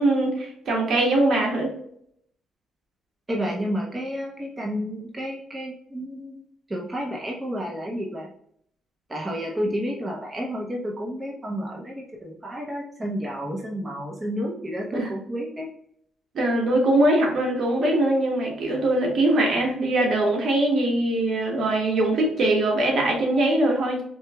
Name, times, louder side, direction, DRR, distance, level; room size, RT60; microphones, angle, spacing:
voice 1, 0.0-1.7 14.9-15.1 16.3-24.0, right 1 dB, 60° right, -1 dB, 1.5 m, -22 dB
voice 2, 3.3-8.3 9.1-15.7, equal, 20° right, -2 dB, 0.9 m, -31 dB
4.5 x 3.3 x 2.2 m, 0.69 s
cardioid pair, 90°, 0 cm